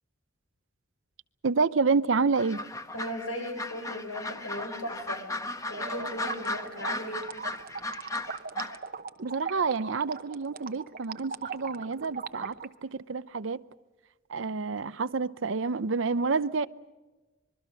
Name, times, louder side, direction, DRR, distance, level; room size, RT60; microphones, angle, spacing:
voice 1, 1.4-2.6 9.2-13.6 14.3-16.7, right 4 dB, 65° right, 0.6 m, -28 dB
Ducks in barn, 2.3-8.8, left 2 dB, 15° left, 1.0 m, -36 dB
voice 2, 2.9-5.2 5.7-7.3, equal, 90° left, 6.0 m, -37 dB
sound 1, 5.7-12.7, right 5 dB, 50° right, 1.0 m, -39 dB
25.5 x 22.5 x 6.4 m
head